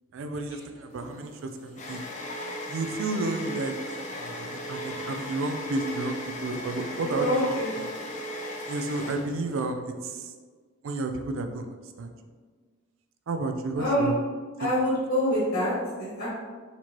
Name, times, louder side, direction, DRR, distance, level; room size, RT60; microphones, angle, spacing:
voice 1, 0.1-1.3 1.6-2.0 2.7-7.8 8.7-10.3 10.8-11.6 12.0-12.1 13.3-14.2, right 2 dB, 65° right, 6 dB, 0.4 m, -31 dB
sound 1, 0.9-9.7, equal, 35° left, 0.5 m, -37 dB
voice 2, 7.0-7.6 13.8-14.1 14.6-16.3, equal, 60° left, -8 dB, 1.2 m, -26 dB
4.0 x 3.0 x 2.9 m, 1.5 s
head